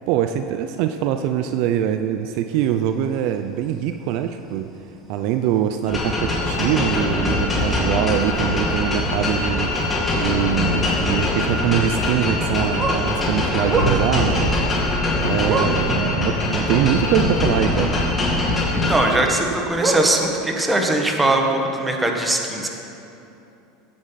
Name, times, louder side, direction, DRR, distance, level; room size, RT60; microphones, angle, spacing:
voice 1, 0.1-4.7 5.1-18.0, right 10 dB, 65° right, 8 dB, 0.5 m, -23 dB
sound 1, 2.5-20.7, right 3 dB, 30° right, 1.4 m, -33 dB
sound 2, 5.9-19.0, left 2 dB, 20° left, 2.6 m, -22 dB
voice 2, 18.7-22.7, right 2 dB, 10° right, 2 dB, 1.7 m, -21 dB
16.5 x 9.6 x 4.1 m, 2.9 s
supercardioid pair, 115°, 0 cm